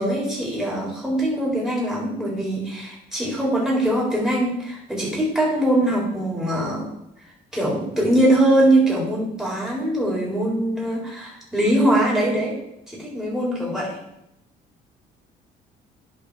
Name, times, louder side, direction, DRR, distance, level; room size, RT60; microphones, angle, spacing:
voice 1, 0.0-6.9 7.5-12.6 12.9-14.0, right 1 dB, 5° right, -4 dB, 4.0 m, -22 dB
10.5 x 5.5 x 4.8 m, 0.82 s
cardioid pair, 110°, 17 cm